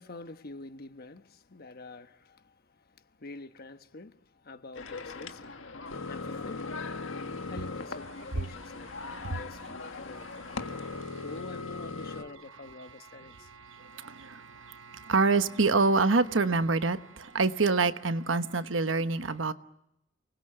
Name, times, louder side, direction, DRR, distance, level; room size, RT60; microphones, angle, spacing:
voice 1, 0.0-10.8 11.2-13.5, left 3 dB, 55° left, 1.2 m, -47 dB
sound 1, 4.8-12.2, left 3 dB, 90° left, 1.7 m, -39 dB
voice 2, 10.6-11.2 13.2-19.5, right 3 dB, 75° right, 1.1 m, -27 dB
30.0 x 20.5 x 7.9 m
head